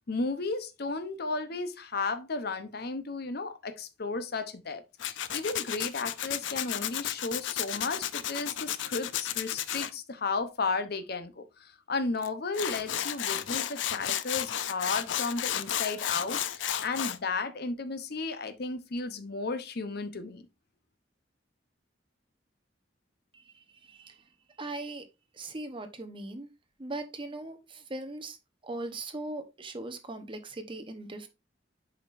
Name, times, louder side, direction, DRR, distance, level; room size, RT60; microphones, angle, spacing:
voice 1, 0.1-20.5, left 3 dB, 60° left, 0.8 m, -34 dB
Tools, 5.0-9.9 12.2-12.3 12.5-17.2, left 11 dB, 80° left, 0.5 m, -32 dB
voice 2, 23.3-24.2 24.6-25.1 25.3-26.5 26.8-28.4 28.6-31.3, right 2 dB, 30° right, 1.0 m, -39 dB
8.0 x 5.0 x 2.6 m
head